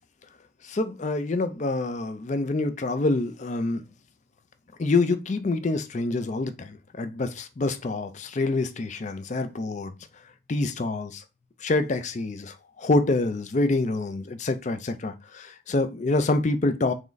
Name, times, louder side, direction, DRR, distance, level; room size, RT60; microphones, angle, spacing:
voice 1, 0.6-3.8 4.8-9.9 10.5-11.2 11.6-16.9, left 2 dB, 35° left, 0.4 m, -26 dB
3.6 x 3.1 x 3.9 m
head